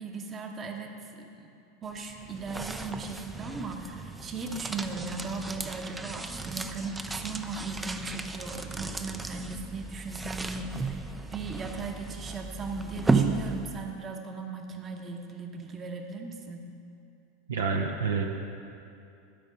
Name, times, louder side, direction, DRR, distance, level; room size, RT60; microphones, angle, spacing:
voice 1, 0.0-1.5 1.8-11.1 11.3-16.7, right 4 dB, 30° right, 3 dB, 1.0 m, -37 dB
sound 1, 1.8-14.0, right 3 dB, 10° right, 0.5 m, -34 dB
voice 2, 17.5-18.3, right 5 dB, 70° right, 2 dB, 0.8 m, -28 dB
12.0 x 5.4 x 6.7 m, 2.6 s
figure-of-eight pair, 85°, 0 cm